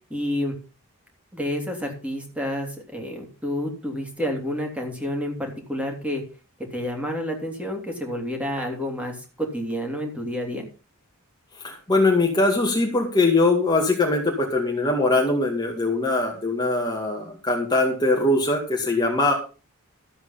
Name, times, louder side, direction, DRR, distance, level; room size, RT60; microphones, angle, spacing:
voice 1, 0.1-0.5 1.3-6.2 6.7-10.7, equal, 5° right, 2 dB, 3.0 m, -29 dB
voice 2, 11.6-19.3, left 2 dB, 20° left, -1 dB, 2.1 m, -21 dB
13.5 x 8.0 x 5.7 m, 0.34 s
head